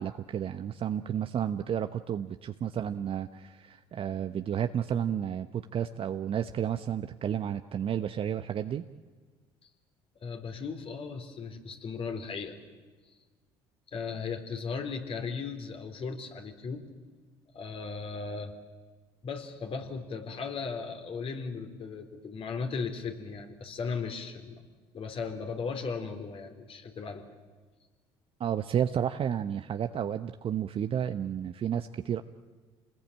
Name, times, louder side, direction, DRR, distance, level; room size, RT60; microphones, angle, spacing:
voice 1, 0.0-8.9 28.4-32.2, right 9 dB, 45° right, 9 dB, 1.0 m, -31 dB
voice 2, 10.2-12.6 13.9-16.8 17.5-18.5 19.2-24.6 24.9-27.2, left 5 dB, 45° left, 5 dB, 4.1 m, -36 dB
28.0 x 20.0 x 8.9 m, 1.4 s
hypercardioid pair, 60°, 13 cm